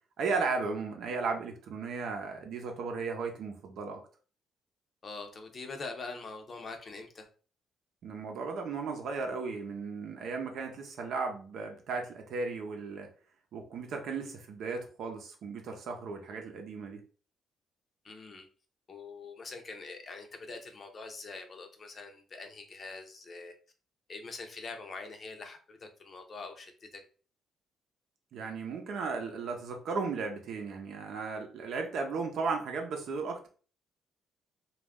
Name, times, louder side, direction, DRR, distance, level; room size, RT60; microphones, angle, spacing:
voice 1, 0.2-4.0 8.0-13.1 13.5-17.0 28.3-33.5, right 4 dB, 70° right, 4 dB, 0.6 m, -35 dB
voice 2, 5.0-7.3 18.0-18.5 18.9-23.5 24.1-27.0, left 3 dB, 45° left, 5 dB, 0.6 m, -44 dB
2.4 x 2.0 x 3.5 m, 0.39 s
cardioid pair, 90°, 0 cm